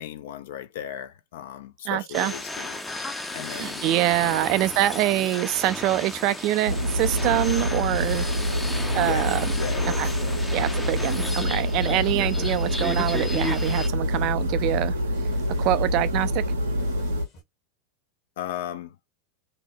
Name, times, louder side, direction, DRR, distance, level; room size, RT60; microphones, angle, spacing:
voice 1, 0.0-2.8 3.3-3.9 4.2-4.4 8.9-10.4 18.4-19.0, left 11 dB, 65° left, 0.4 m, -36 dB
voice 2, 1.9-2.3 3.5-8.3 8.9-9.5 10.0-10.1 10.5-14.9 15.6-16.4, right 15 dB, 50° right, 0.4 m, -25 dB
sound 1, 2.1-13.9, left 2 dB, 10° left, 0.5 m, -34 dB
sound 2, 3.9-17.4, left 1 dB, 50° left, 1.2 m, -52 dB
sound 3, 6.6-17.2, equal, 85° right, 0.7 m, -26 dB
2.8 x 2.1 x 2.6 m
hypercardioid pair, 95°, 0 cm